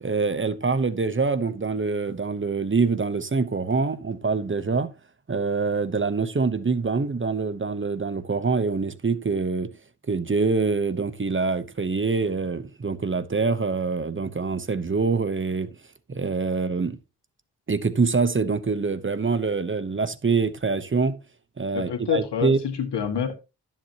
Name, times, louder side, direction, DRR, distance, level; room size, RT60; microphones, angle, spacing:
voice 1, 0.0-4.9 5.3-9.7 10.1-15.7 16.1-17.0 17.7-21.2 21.6-22.6, right 4 dB, 30° right, 0.9 m, -25 dB
voice 2, 21.7-23.4, left 8 dB, 75° left, 2.0 m, -27 dB
12.0 x 7.4 x 2.9 m
cardioid pair, 75°, 41 cm